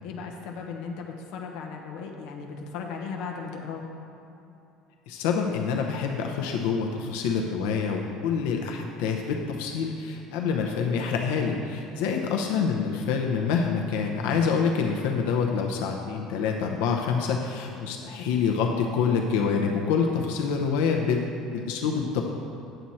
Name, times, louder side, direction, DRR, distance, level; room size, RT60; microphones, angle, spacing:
voice 1, 0.0-3.8 12.0-12.3, left 5 dB, 55° left, 1 dB, 1.0 m, -36 dB
voice 2, 5.1-22.2, left 6 dB, 90° left, 2 dB, 0.8 m, -26 dB
9.1 x 7.7 x 4.2 m, 2.8 s
cardioid pair, 175°, 0 cm